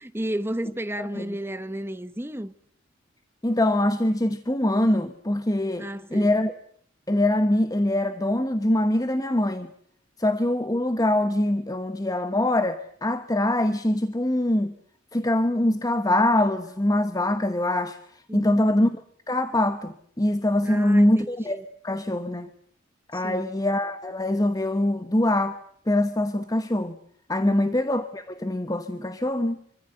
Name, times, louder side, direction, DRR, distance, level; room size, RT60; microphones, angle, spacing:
voice 1, 0.0-2.5 5.8-6.3 18.3-18.7 20.6-21.6 23.1-23.5 27.4-27.7, right 1 dB, 10° right, 1.1 m, -33 dB
voice 2, 1.0-1.4 3.4-6.5 7.1-9.7 10.2-14.7 15.1-18.9 19.3-22.5 23.1-25.6 25.9-27.0 27.3-29.6, left 1 dB, 20° left, 1.1 m, -23 dB
26.0 x 25.0 x 8.0 m
head